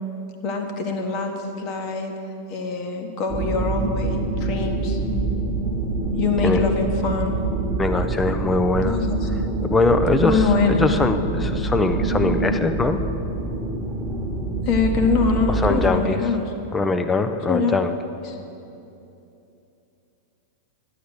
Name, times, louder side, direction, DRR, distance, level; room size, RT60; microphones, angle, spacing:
voice 1, 0.4-2.1 2.5-5.0 6.2-7.4 8.8-9.3 10.2-10.9 14.6-16.4 17.5-17.7 18.2-18.4, left 4 dB, 40° left, 4 dB, 1.5 m, -24 dB
sound 1, 3.3-16.0, right 2 dB, 5° right, 1.5 m, -25 dB
voice 2, 7.8-9.0 9.6-13.0 15.6-16.2 16.7-17.9, left 3 dB, 15° left, 9 dB, 0.7 m, -22 dB
11.5 x 8.1 x 6.6 m, 2.8 s
figure-of-eight pair, 95°, 0 cm